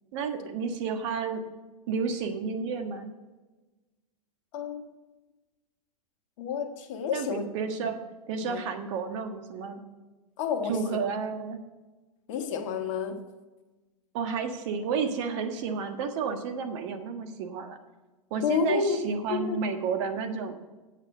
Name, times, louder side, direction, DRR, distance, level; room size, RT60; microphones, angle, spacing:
voice 1, 0.1-1.4 1.9-3.1 7.1-8.0 8.3-9.8 10.7-11.6 14.1-17.8 18.3-20.6, right 5 dB, 55° right, 1.5 m, -31 dB
voice 2, 4.5-4.9 6.4-7.5 8.4-8.6 10.4-11.0 12.3-13.2 18.4-19.0 19.3-19.6, left 6 dB, 60° left, 1.5 m, -30 dB
8.6 x 8.2 x 5.5 m
hypercardioid pair, 110°, 18 cm